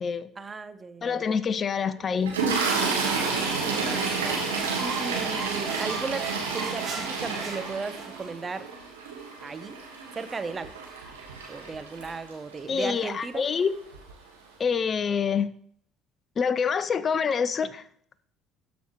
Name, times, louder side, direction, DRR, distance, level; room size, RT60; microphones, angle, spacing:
voice 1, 0.4-1.2 3.4-4.4 4.8-8.7 9.4-9.8 10.1-10.7 11.5-13.4, right 4 dB, 30° right, 12 dB, 0.7 m, -36 dB
voice 2, 1.0-2.4 12.7-13.7 14.6-15.5 16.4-17.8, left 6 dB, 40° left, 15 dB, 0.5 m, -26 dB
Toilet flush, 2.2-12.5 13.5-13.7 13.9-14.1, right 4 dB, 85° right, 1.4 m, -30 dB
sound 1, 4.2-8.3, right 6 dB, 45° right, 1.4 m, -38 dB
12.5 x 5.2 x 3.0 m, 0.62 s
hypercardioid pair, 55°, 0 cm